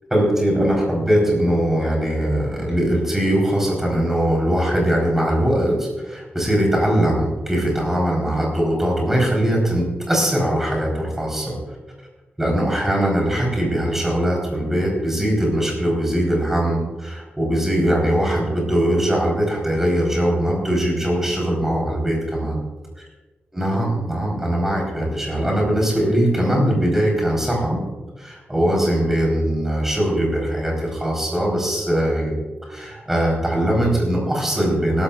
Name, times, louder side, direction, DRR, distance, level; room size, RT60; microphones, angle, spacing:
voice 1, 0.1-11.6 12.4-22.6 23.5-27.8 28.2-32.4 32.7-35.0, right 1 dB, 10° right, -2 dB, 4.4 m, -21 dB
19.0 x 13.0 x 2.5 m, 1.2 s
wide cardioid pair, 180°, 4 cm